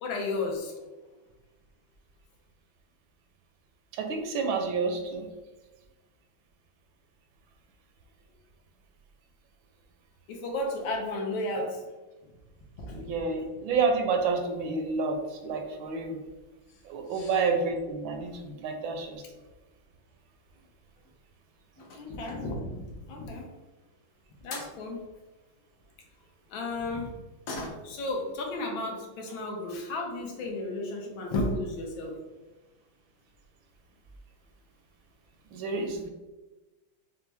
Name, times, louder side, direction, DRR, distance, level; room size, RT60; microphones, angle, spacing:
voice 1, 0.0-0.7 10.3-11.8 12.8-13.1 17.1-17.4 21.9-23.5 24.4-25.0 26.5-27.2 27.8-32.2, left 2 dB, 80° left, 1 dB, 1.6 m, -33 dB
voice 2, 4.0-5.3 12.9-16.2 16.9-19.2 35.5-36.1, right 4 dB, 80° right, 4 dB, 1.3 m, -29 dB
sound 1, 20.7-21.2 21.7-22.6 24.1-24.2 24.5-24.8 27.4-28.1 28.5-28.6 29.0-29.1 29.9-30.0 30.3-30.4 30.9-31.2 31.5-31.6 31.9-32.0, left 2 dB, 60° left, 0.9 m, -42 dB
5.7 x 2.0 x 3.3 m, 1.1 s
omnidirectional pair, 2.2 m